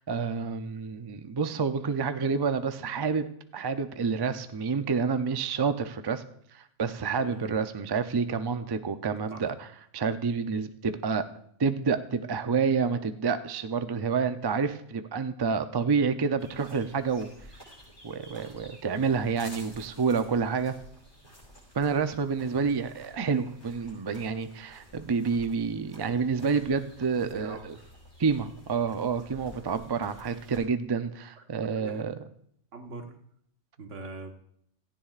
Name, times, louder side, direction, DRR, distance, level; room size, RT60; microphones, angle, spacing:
voice 1, 0.0-3.3 3.5-6.2 6.5-9.7 9.9-11.3 11.6-17.3 18.0-20.7 21.7-27.7 28.2-32.1, right 5 dB, 35° right, 9 dB, 0.4 m, -28 dB
voice 2, 7.2-7.5 9.3-9.4 27.2-27.9 31.7-32.0 32.7-33.2 33.8-34.3, right 3 dB, 80° right, 4 dB, 1.7 m, -42 dB
sound 1, 16.4-30.6, equal, 35° left, 5.8 m, -52 dB
17.0 x 14.5 x 2.5 m, 0.68 s
omnidirectional pair, 1.3 m